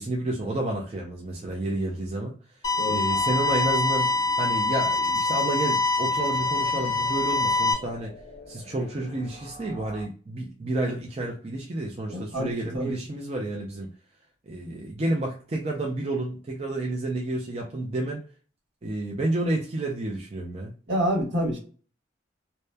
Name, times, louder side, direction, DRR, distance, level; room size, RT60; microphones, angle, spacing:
voice 1, 0.0-2.3 2.9-8.1 8.5-13.9 14.5-18.2 18.8-20.7, right 2 dB, 35° right, -1 dB, 0.4 m, -30 dB
sound 1, 2.6-7.7, left 3 dB, 20° left, 0.6 m, -24 dB
sound 2, 3.1-10.0, equal, 80° left, 0.6 m, -46 dB
voice 2, 12.0-12.9 14.6-14.7 20.9-21.6, equal, 70° right, -3 dB, 1.3 m, -28 dB
2.8 x 2.1 x 2.2 m, 0.37 s
head